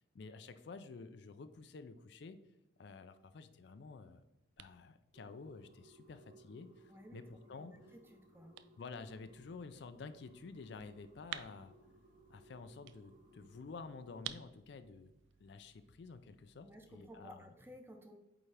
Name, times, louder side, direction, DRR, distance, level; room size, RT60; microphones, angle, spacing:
voice 1, 0.0-2.4 2.8-4.2 4.6-7.2 7.5-7.8 8.8-11.7 12.3-15.1 15.4-17.5, left 4 dB, 60° left, 10 dB, 0.4 m, -51 dB
sound 1, 3.7-17.2, right 11 dB, 65° right, 0.3 m, -55 dB
sound 2, 5.1-14.3, right 1 dB, 40° right, 1.9 m, -64 dB
voice 2, 6.9-8.6 16.6-18.2, equal, 10° right, 4 dB, 0.6 m, -56 dB
8.6 x 3.6 x 3.3 m, 0.96 s
head